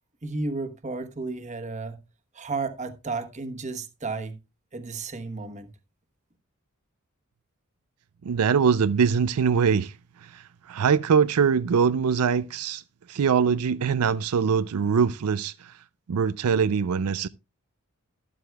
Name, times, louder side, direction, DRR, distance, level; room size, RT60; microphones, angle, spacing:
voice 1, 0.2-2.0 2.3-4.4 4.7-5.7, right 3 dB, 30° right, 1.1 m, -33 dB
voice 2, 8.3-9.9 10.3-10.4 10.7-12.8 13.1-15.5 16.1-17.3, right 6 dB, 85° right, 0.4 m, -22 dB
12.5 x 12.0 x 2.3 m
head